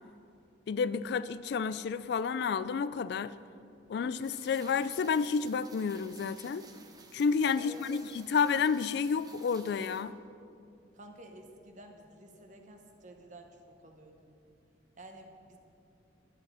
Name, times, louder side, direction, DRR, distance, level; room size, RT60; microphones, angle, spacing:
voice 1, 0.7-3.3 3.9-6.6 7.1-10.1, left 5 dB, 60° left, 16 dB, 0.3 m, -30 dB
Rain, 4.2-10.0, right 4 dB, 20° right, 0.8 m, -55 dB
voice 2, 7.6-8.0 10.9-13.6 13.8-14.2 15.0-15.6, right 1 dB, 40° right, 4 dB, 1.2 m, -51 dB
11.5 x 9.4 x 5.6 m, 2.5 s
head